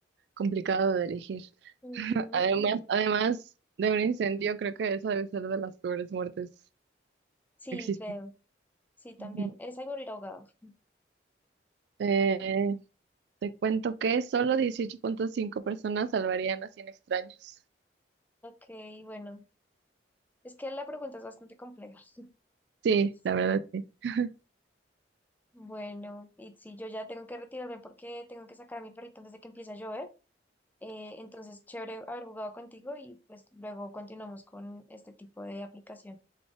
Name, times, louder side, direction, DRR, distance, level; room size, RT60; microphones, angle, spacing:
voice 1, 0.4-1.5 1.9-3.4 3.8-6.5 7.7-8.0 9.2-9.3 12.0-12.8 13.4-17.3 22.8-24.3, right 6 dB, 65° right, 0.3 m, -29 dB
voice 2, 1.8-2.5 7.6-8.3 9.0-10.7 18.4-19.4 20.4-22.3 25.5-30.1 30.8-36.2, left 1 dB, 10° left, 0.4 m, -42 dB
3.9 x 3.6 x 3.3 m
head